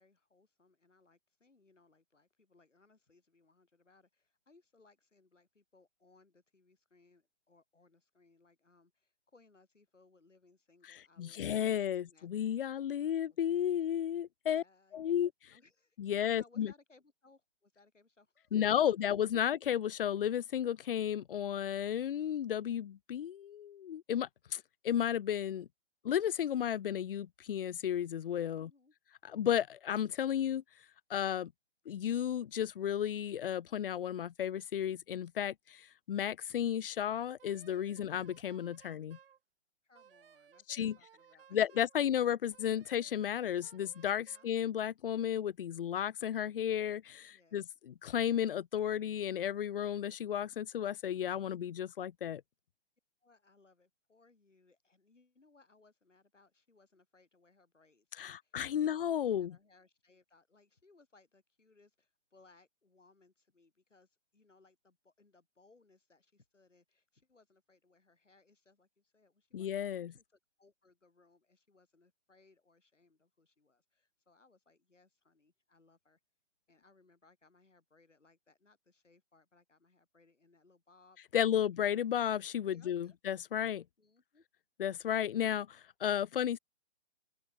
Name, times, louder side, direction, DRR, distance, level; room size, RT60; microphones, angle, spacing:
voice 1, 0.0-12.6 13.0-14.0 14.5-18.6 28.6-28.9 39.8-41.9 44.2-44.5 47.3-47.7 53.2-76.2 76.7-81.9 82.7-83.2 84.0-84.4, left 3 dB, 85° left, 6.2 m, -67 dB
voice 2, 10.9-14.6 14.9-15.3 16.0-16.7 18.5-25.7 26.0-28.7 29.2-30.6 31.1-31.5 31.9-39.2 40.7-41.0 41.5-52.4 58.2-59.6 69.5-70.1 81.3-83.8 84.8-86.6, left 10 dB, 50° left, 0.6 m, -33 dB
Wind instrument woodwind instrument, 37.4-39.4 39.9-42.0 42.5-44.5, right 9 dB, 50° right, 4.9 m, -62 dB
open air
figure-of-eight pair, 140°, 36 cm